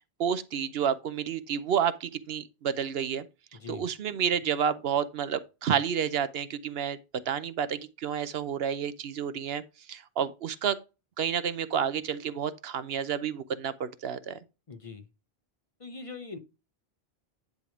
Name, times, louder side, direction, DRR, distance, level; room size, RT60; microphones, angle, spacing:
voice 1, 0.2-3.3 3.7-7.0 7.3-9.6 9.9-10.8 11.2-14.4, right 8 dB, 75° right, 0.9 m, -30 dB
voice 2, 3.5-3.9 14.7-15.1 15.8-16.4, left 4 dB, 35° left, 0.7 m, -42 dB
10.5 x 3.5 x 4.8 m
omnidirectional pair, 1.0 m